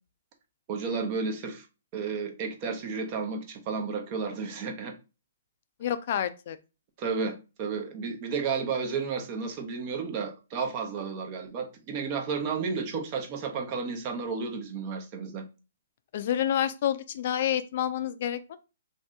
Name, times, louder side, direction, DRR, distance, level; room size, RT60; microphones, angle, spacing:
voice 1, 0.7-1.7 1.9-5.0 7.0-15.4, right 5 dB, 40° right, 0.8 m, -32 dB
voice 2, 5.8-6.6 16.1-18.6, left 10 dB, 55° left, 0.3 m, -28 dB
2.7 x 2.6 x 3.4 m
hypercardioid pair, 130°, 0 cm